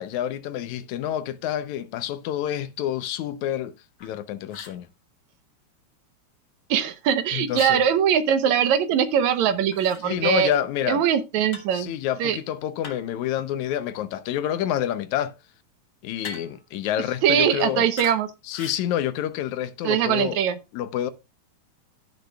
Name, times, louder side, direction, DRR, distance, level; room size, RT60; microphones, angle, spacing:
voice 1, 0.0-3.7 4.0-4.9 7.3-7.8 10.0-11.0 11.7-15.3 16.0-17.9 18.4-20.4 20.7-21.1, left 11 dB, 80° left, 2.1 m, -28 dB
sound 1, 4.0-4.1 4.5-4.8 7.5-7.8 9.7-10.0 11.5-11.8 12.8-13.2 16.2-16.7 18.0-18.2 18.5-18.8, left 4 dB, 45° left, 1.8 m, -40 dB
voice 2, 6.7-10.5 10.9-11.9 12.2-12.4 17.2-18.3 19.8-20.6, right 8 dB, 75° right, 2.2 m, -21 dB
16.0 x 6.6 x 2.3 m
omnidirectional pair, 3.4 m